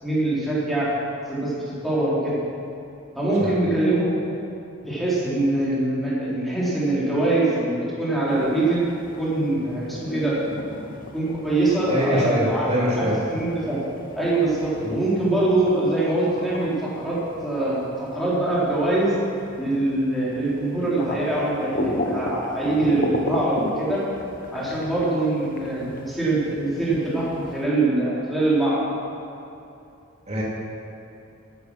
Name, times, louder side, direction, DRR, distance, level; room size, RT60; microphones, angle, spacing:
voice 1, 0.0-0.9 1.3-2.3 3.2-4.2 4.8-8.8 9.1-10.4 11.1-13.8 14.1-17.8 18.1-19.2 19.6-24.0 24.5-28.8, right 2 dB, ahead, -9 dB, 3.4 m, -23 dB
sound 1, 8.3-27.6, left 1 dB, 45° left, 1.2 m, -36 dB
voice 2, 11.9-13.2 14.8-15.0 30.3-30.4, equal, 30° right, -5 dB, 2.9 m, -23 dB
13.0 x 9.4 x 6.1 m, 2.8 s
head